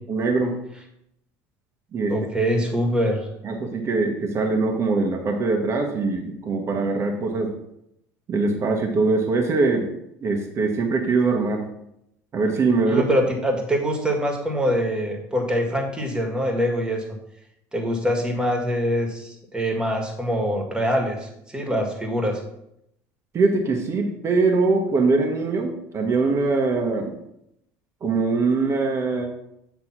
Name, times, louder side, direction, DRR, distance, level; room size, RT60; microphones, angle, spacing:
voice 1, 0.1-0.6 1.9-2.1 3.4-7.5 8.3-9.9 10.2-11.6 12.3-13.1 23.3-27.2 28.0-29.3, right 3 dB, 40° right, 3 dB, 1.3 m, -22 dB
voice 2, 2.1-3.3 12.9-17.0 17.7-22.4, equal, 10° right, 2 dB, 1.8 m, -24 dB
8.1 x 3.4 x 5.9 m, 0.79 s
supercardioid pair, 110°, 7 cm